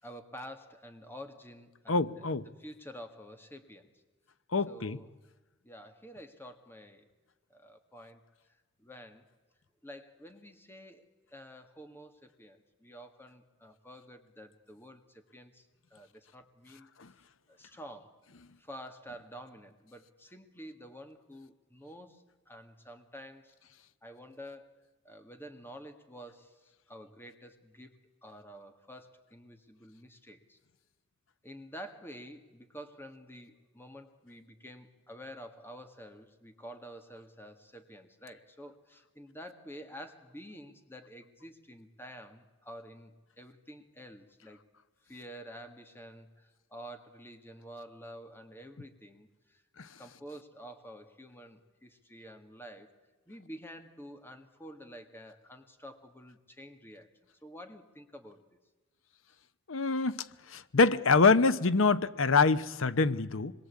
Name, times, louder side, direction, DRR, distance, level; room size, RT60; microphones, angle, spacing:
voice 1, 0.0-3.9 4.7-5.1 5.6-7.1 7.5-8.2 8.5-9.3 9.8-16.9 17.5-18.2 18.6-23.6 24.0-24.8 25.0-30.6 31.4-44.6 45.0-49.6 50.0-52.9 53.3-57.1 57.4-58.5, equal, 10° left, 1.9 m, -49 dB
voice 2, 1.9-2.4 4.5-5.0 17.0-17.1 59.7-60.2 60.5-63.5, left 4 dB, 70° left, 0.9 m, -25 dB
26.0 x 22.0 x 8.4 m
head